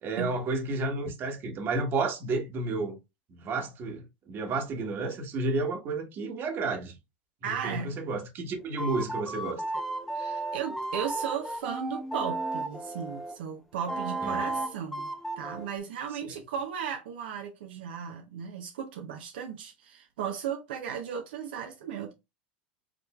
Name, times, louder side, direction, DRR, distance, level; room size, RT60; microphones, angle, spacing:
voice 1, 0.0-3.0 3.4-6.9 7.4-9.6 14.2-14.5, right 3 dB, 40° right, 1.3 m, -31 dB
voice 2, 7.4-7.9 10.1-15.1 15.4-22.1, right 8 dB, 75° right, 0.7 m, -36 dB
sound 1, 8.8-13.3 13.9-15.7, right 2 dB, 5° left, 0.9 m, -34 dB
4.9 x 3.2 x 2.2 m
hypercardioid pair, 95°, 5 cm